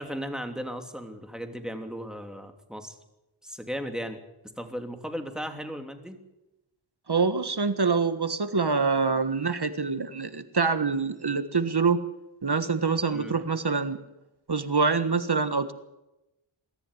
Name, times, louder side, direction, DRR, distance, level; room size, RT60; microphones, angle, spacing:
voice 1, 0.0-3.0 3.4-4.2 4.6-6.2 13.1-13.3, equal, ahead, 5 dB, 3.1 m, -36 dB
voice 2, 7.1-12.0 12.4-14.0 14.5-15.7, right 4 dB, 50° right, 11 dB, 1.5 m, -25 dB
23.0 x 14.0 x 9.9 m, 0.96 s
wide cardioid pair, 50°, 49 cm